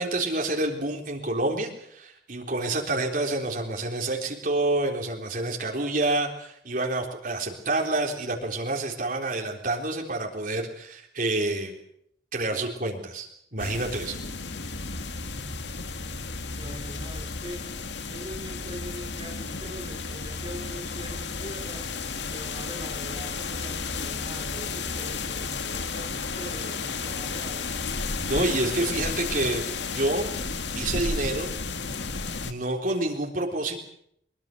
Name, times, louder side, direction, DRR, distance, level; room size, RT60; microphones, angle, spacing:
voice 1, 0.0-11.8 12.3-14.2 28.2-29.6 30.0-30.5 30.7-31.6 32.4-33.8, right 2 dB, 50° right, 1 dB, 3.8 m, -28 dB
sound 1, 13.6-32.5, left 4 dB, 85° left, 1.9 m, -33 dB
voice 2, 15.3-15.7 16.5-17.7 18.1-21.9 22.3-27.7, equal, 30° right, 2 dB, 3.9 m, -42 dB
23.0 x 23.0 x 6.8 m, 0.70 s
head